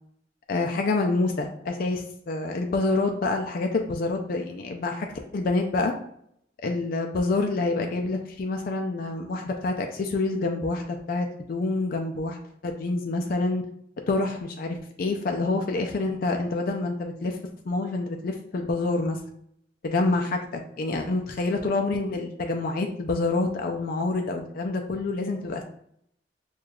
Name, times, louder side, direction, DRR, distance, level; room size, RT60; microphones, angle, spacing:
voice 1, 0.5-5.1 5.3-5.9 6.6-12.4 12.6-13.6 14.1-17.4 17.7-19.2 19.8-25.6, left 3 dB, 50° left, 3 dB, 0.4 m, -27 dB
6.3 x 2.3 x 2.3 m, 0.69 s
head